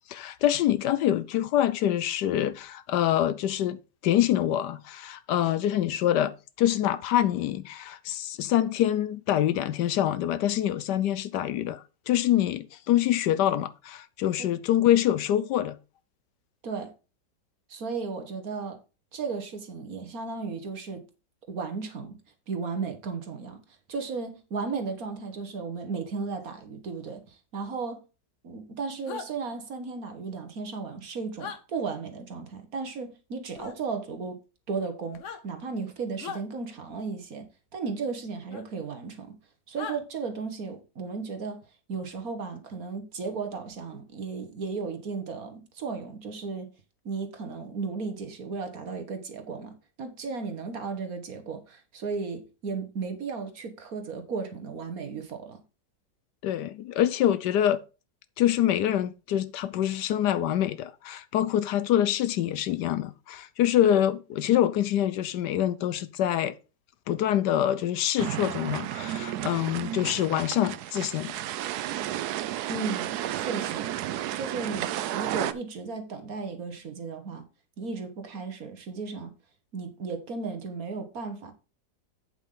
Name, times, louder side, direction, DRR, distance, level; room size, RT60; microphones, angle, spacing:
voice 1, 0.1-3.8 4.0-15.8 56.4-57.8 58.4-66.5 67.1-71.3, left 11 dB, 75° left, 1.2 m, -25 dB
voice 2, 16.6-16.9 17.7-18.8 19.1-21.0 21.5-22.2 22.5-23.6 23.9-28.0 28.4-34.4 34.7-37.5 37.7-39.4 39.7-41.6 41.9-46.7 47.1-55.6 72.7-73.9 74.3-77.5 77.8-79.3 79.7-81.5, right 4 dB, 55° right, 1.8 m, -35 dB
sound 1, 29.1-29.3 31.4-31.6 33.6-33.8 35.1-35.4 36.2-36.4 38.5-38.6 39.8-40.0, left 6 dB, 50° left, 1.2 m, -37 dB
sound 2, 68.2-75.5, right 12 dB, 70° right, 1.1 m, -32 dB
8.3 x 7.5 x 3.8 m
omnidirectional pair, 1.9 m